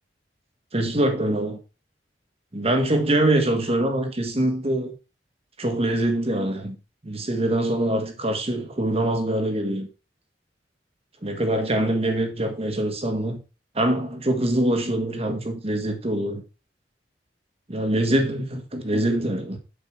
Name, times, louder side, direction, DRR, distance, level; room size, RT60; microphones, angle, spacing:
voice 1, 0.7-1.6 2.5-4.9 5.6-6.7 7.0-9.9 11.2-13.4 13.7-16.4 17.7-19.6, right 1 dB, 35° right, 1.5 m, -24 dB
7.2 x 5.2 x 4.6 m
head